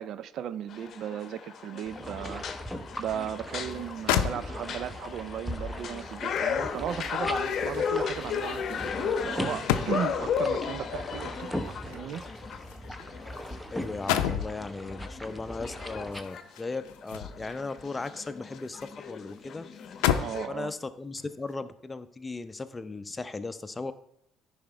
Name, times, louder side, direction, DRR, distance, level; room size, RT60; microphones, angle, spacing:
voice 1, 0.0-2.4 3.0-12.2 20.2-20.7, right 10 dB, 65° right, 0.4 m, -36 dB
sound 1, 0.7-20.5, left 7 dB, 55° left, 0.8 m, -35 dB
sound 2, 1.8-16.2, equal, ahead, 0.9 m, -39 dB
sound 3, 3.7-3.8 4.1-4.9 6.3-10.3 11.4-13.5 13.8-14.6 16.0-17.6 18.0-19.0 19.3-19.4 19.8-20.5 21.2-21.4, left 10 dB, 90° left, 0.5 m, -32 dB
voice 2, 13.5-19.6 20.5-23.9, left 3 dB, 20° left, 0.6 m, -37 dB
10.0 x 5.0 x 4.5 m
supercardioid pair, 75°, 0 cm